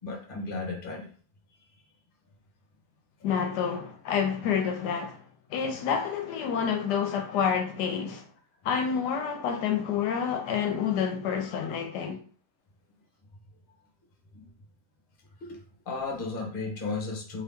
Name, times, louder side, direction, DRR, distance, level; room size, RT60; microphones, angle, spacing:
voice 1, 0.0-1.1 14.3-14.5 15.4-15.6 15.9-17.4, left 3 dB, 40° left, 1.0 m, -34 dB
voice 2, 3.2-5.2 5.5-8.2 8.6-12.2, left 7 dB, 80° left, 1.1 m, -28 dB
3.0 x 2.8 x 3.5 m
omnidirectional pair, 1.8 m